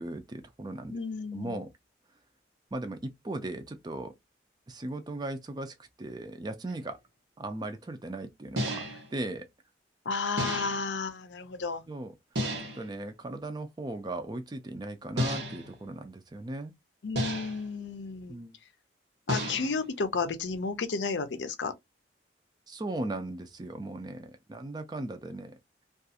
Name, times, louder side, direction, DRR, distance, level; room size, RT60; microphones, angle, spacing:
voice 1, 0.0-1.0 1.3-1.7 2.7-4.1 4.7-7.0 7.4-9.5 11.9-12.1 12.7-16.7 18.3-18.5 22.7-25.6, right 2 dB, 25° right, 0.4 m, -37 dB
voice 2, 0.9-1.6 10.1-11.8 17.0-18.4 19.3-21.7, left 4 dB, 80° left, 0.5 m, -32 dB
sound 1, 6.7-6.8 8.6-9.1 10.4-11.0 12.4-12.9 15.2-15.8 17.2-17.7 19.3-19.9, equal, 75° right, 1.0 m, -32 dB
2.4 x 2.4 x 2.6 m
head